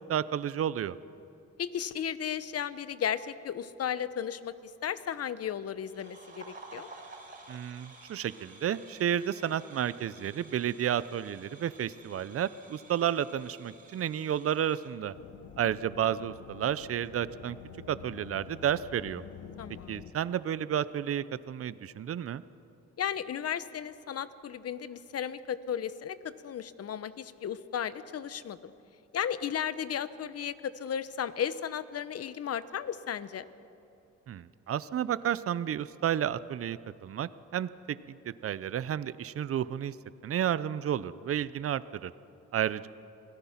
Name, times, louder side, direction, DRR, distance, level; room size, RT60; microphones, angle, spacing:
voice 1, 0.1-0.9 7.5-15.1 15.6-17.6 17.9-19.2 19.9-22.4 34.3-40.0 40.2-42.1 42.5-42.9, right 10 dB, 50° right, 16 dB, 0.7 m, -31 dB
voice 2, 1.6-4.5 4.8-6.9 19.6-20.0 23.0-28.7 29.1-33.4, left 9 dB, 55° left, 14 dB, 1.0 m, -35 dB
sound 1, 5.8-14.9, right 3 dB, 30° right, 4.0 m, -52 dB
sound 2, 15.1-20.1, left 8 dB, 80° left, 1.5 m, -48 dB
26.5 x 18.0 x 5.9 m, 2.8 s
cardioid pair, 90°, 30 cm